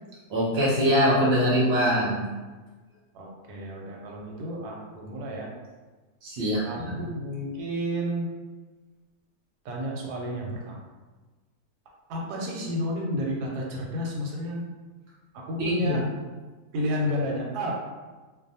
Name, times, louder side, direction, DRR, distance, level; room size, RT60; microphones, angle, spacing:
voice 1, 0.3-2.2 6.2-7.0 15.6-16.0, equal, 60° right, -6 dB, 0.7 m, -23 dB
voice 2, 3.1-5.5 6.4-8.3 9.6-10.8 12.1-14.6 15.3-16.0 16.7-17.8, equal, 85° right, -1 dB, 1.1 m, -31 dB
2.6 x 2.1 x 2.7 m, 1.3 s
omnidirectional pair, 1.7 m